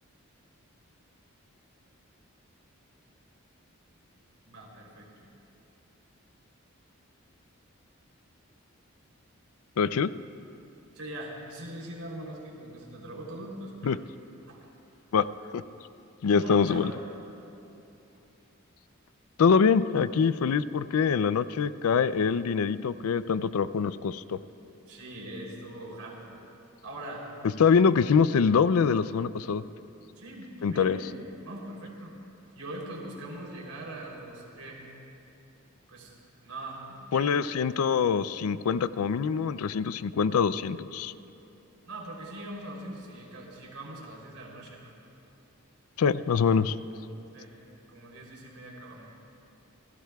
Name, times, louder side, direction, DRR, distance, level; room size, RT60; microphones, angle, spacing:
voice 1, 4.4-5.3 10.9-14.0 14.5-14.7 16.3-16.9 24.9-26.4 26.8-27.3 30.1-32.1 32.5-34.8 35.9-36.1 36.4-37.3 41.9-44.9 47.3-47.5 47.9-49.1, right 1 dB, 90° right, -2 dB, 3.3 m, -41 dB
voice 2, 9.8-10.1 13.8-14.0 15.1-15.2 15.5-15.6 16.2-16.9 19.4-24.4 27.6-29.6 30.6-31.0 37.1-41.1 46.0-46.7, left 6 dB, 80° left, 16 dB, 0.4 m, -24 dB
27.5 x 16.5 x 2.3 m, 2.8 s
head